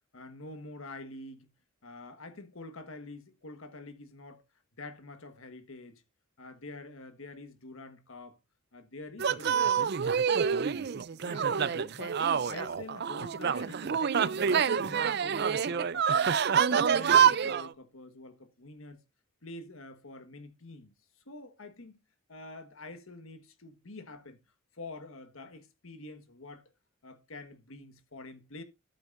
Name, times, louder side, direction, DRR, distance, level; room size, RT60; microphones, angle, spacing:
voice 1, 0.1-1.5 1.8-4.4 4.8-6.0 6.4-8.4 8.7-10.2 11.1-14.0 14.3-16.4 16.8-19.0 19.4-20.9 21.2-22.0 22.3-24.4 24.7-26.7 27.0-28.6, left 2 dB, 75° left, 1.5 m, -47 dB
sound 1, 9.2-17.7, right 7 dB, 50° right, 0.4 m, -27 dB
12.0 x 8.6 x 2.5 m
head